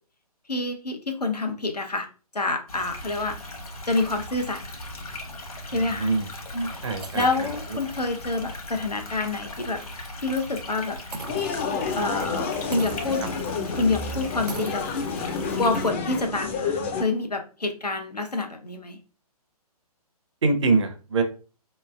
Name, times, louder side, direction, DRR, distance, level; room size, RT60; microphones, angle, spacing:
voice 1, 0.5-2.1 2.3-3.4 3.9-4.6 5.7-6.1 6.5-6.7 7.1-9.8 10.2-11.0 12.0-13.2 13.8-14.9 15.6-19.0, left 3 dB, 90° left, 4 dB, 0.7 m, -27 dB
sound 1, 2.7-15.9, left 1 dB, 65° left, 1.1 m, -39 dB
voice 2, 5.7-6.3 6.8-7.5 20.4-21.2, right 3 dB, 50° right, 6 dB, 0.7 m, -24 dB
sound 2, 6.6-8.0 8.4-8.5 8.9-9.1 11.1-11.9 12.7-13.5 13.8-13.9 14.5-14.9, right 3 dB, 85° right, 0.5 m, -39 dB
sound 3, 11.3-17.0, left 5 dB, 20° left, 0.4 m, -29 dB
4.0 x 3.1 x 2.3 m, 0.36 s
figure-of-eight pair, 135°, 20 cm